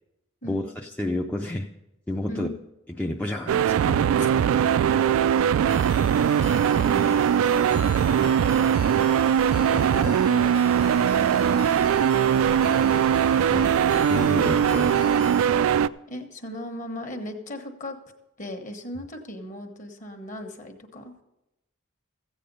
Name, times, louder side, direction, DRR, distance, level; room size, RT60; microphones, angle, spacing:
voice 1, 0.4-1.7 2.1-2.5 3.0-4.6 7.7-7.9 9.7-9.9 13.5-13.8 14.1-15.0, left 1 dB, 5° left, 0 dB, 0.4 m, -30 dB
voice 2, 2.3-2.6 4.2-4.3 6.7-7.2 9.6-11.4 16.1-18.0 18.4-21.1, left 1 dB, 40° left, 5 dB, 1.2 m, -37 dB
sound 1, 3.5-15.9, right 8 dB, 70° right, 0.3 m, -21 dB
sound 2, 5.7-15.5, left 7 dB, 80° left, 0.7 m, -41 dB
14.5 x 8.4 x 5.4 m, 0.93 s
head